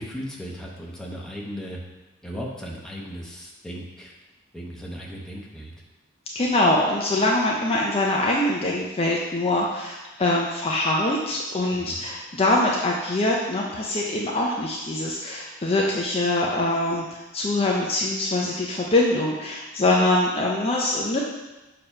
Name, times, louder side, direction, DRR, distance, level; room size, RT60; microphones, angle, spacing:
voice 1, 0.0-1.8 2.2-4.1 4.5-5.7 11.7-12.0, equal, 5° left, -3 dB, 0.9 m, -36 dB
voice 2, 6.3-21.2, left 2 dB, 30° left, -2 dB, 0.5 m, -23 dB
6.7 x 2.9 x 5.4 m, 1.1 s
head